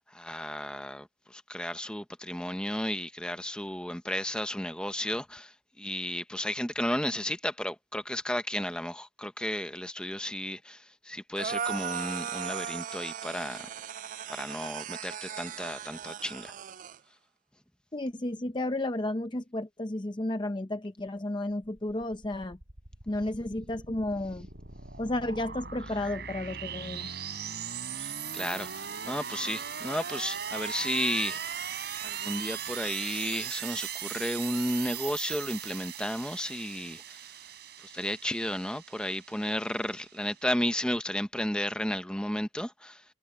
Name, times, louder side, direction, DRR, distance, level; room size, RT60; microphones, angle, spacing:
voice 1, 0.0-13.7 14.3-16.5 27.9-31.5 32.0-37.2 37.8-43.0, left 1 dB, 5° left, 1.1 m, -33 dB
sound 1, 11.4-17.0, right 8 dB, 45° right, 0.3 m, -37 dB
voice 2, 17.9-22.6 23.1-24.5 25.0-27.1, left 1 dB, 25° left, 0.7 m, -32 dB
sound 2, 21.6-40.4, right 8 dB, 60° right, 5.0 m, -39 dB
head